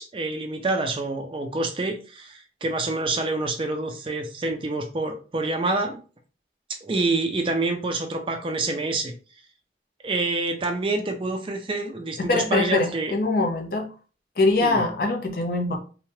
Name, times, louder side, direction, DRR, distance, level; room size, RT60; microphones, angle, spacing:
voice 1, 0.0-6.0 6.8-9.1 10.0-13.1 14.6-14.8, right 2 dB, 30° right, 5 dB, 0.4 m, -27 dB
voice 2, 12.2-13.9 14.4-15.8, left 2 dB, 55° left, 3 dB, 0.6 m, -23 dB
3.0 x 2.2 x 2.7 m, 0.36 s
head